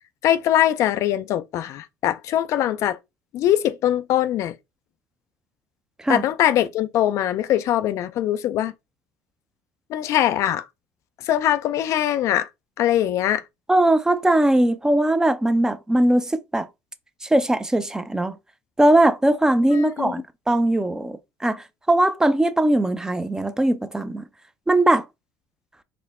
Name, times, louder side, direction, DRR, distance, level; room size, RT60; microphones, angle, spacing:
voice 1, 0.2-3.0 3.3-4.5 6.1-8.7 9.9-10.7 11.2-12.5 12.8-13.4 19.7-20.1, left 12 dB, 60° left, 0.4 m, -22 dB
voice 2, 13.7-16.7 17.2-18.4 18.8-24.2 24.7-25.1, right 1 dB, 10° right, 0.5 m, -20 dB
4.2 x 2.1 x 4.1 m
supercardioid pair, 80°, 6 cm